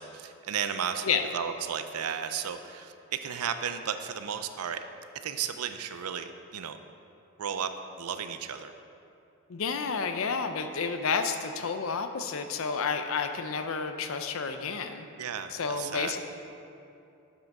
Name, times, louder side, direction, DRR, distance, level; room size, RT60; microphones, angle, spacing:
voice 1, 0.0-4.8 5.2-6.8 7.4-7.7 8.0-8.7 15.2-16.1, right 8 dB, 85° right, 9 dB, 0.5 m, -34 dB
voice 2, 9.5-15.1 15.5-16.2, left 5 dB, 70° left, 7 dB, 0.6 m, -30 dB
8.2 x 6.0 x 5.3 m, 2.7 s
head